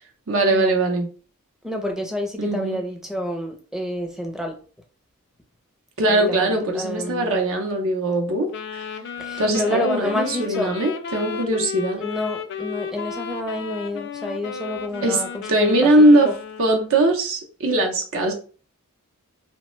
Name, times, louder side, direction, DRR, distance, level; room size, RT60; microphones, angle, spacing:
voice 1, 0.3-1.1 2.4-2.8 6.0-8.8 9.4-12.0 15.0-15.2 15.5-16.3 16.6-18.3, right 1 dB, 65° right, 2 dB, 0.7 m, -20 dB
voice 2, 1.6-4.6 6.1-7.4 9.2-10.7 12.0-15.9 16.2-16.4, left 1 dB, ahead, 3 dB, 0.5 m, -29 dB
Wind instrument woodwind instrument, 8.5-17.0, left 6 dB, 55° left, 0.4 m, -34 dB
3.1 x 2.1 x 3.0 m, 0.38 s
head